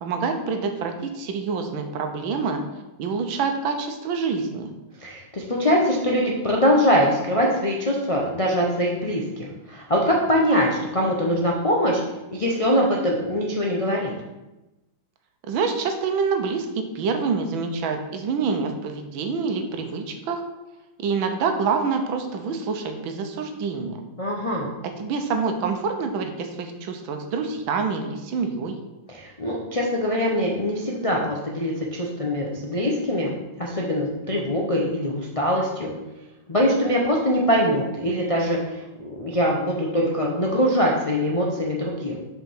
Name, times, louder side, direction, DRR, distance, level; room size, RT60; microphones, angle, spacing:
voice 1, 0.0-2.6 3.0-4.7 15.5-20.4 21.0-24.0 24.8-28.8, right 5 dB, 85° right, 6 dB, 1.6 m, -26 dB
voice 2, 5.0-12.0 12.3-14.1 24.2-24.7 29.1-35.9 36.5-42.2, equal, 50° left, -3 dB, 0.4 m, -23 dB
5.8 x 5.0 x 5.7 m, 1.0 s
omnidirectional pair, 2.1 m